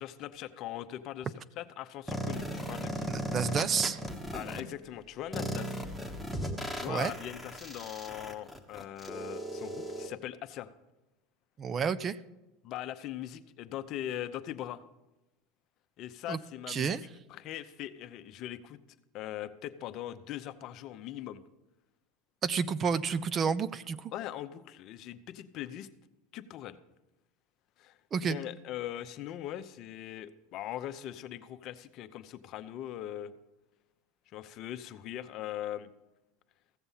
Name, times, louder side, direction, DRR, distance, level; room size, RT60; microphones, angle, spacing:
voice 1, 0.0-3.1 4.3-5.8 6.7-10.7 12.6-14.8 16.0-18.8 19.1-21.4 24.1-25.9 26.3-26.8 27.8-28.0 28.3-33.3 34.3-35.9, left 12 dB, 50° left, 11 dB, 0.7 m, -41 dB
sound 1, 2.1-4.6 5.3-10.1, equal, 5° right, 1.2 m, -37 dB
voice 2, 3.1-4.0 6.9-7.1 11.6-12.2 16.3-16.4 16.7-17.0 22.4-24.1 28.1-28.4, right 6 dB, 30° right, 16 dB, 0.4 m, -30 dB
15.5 x 6.9 x 5.6 m, 1.0 s
supercardioid pair, 115°, 0 cm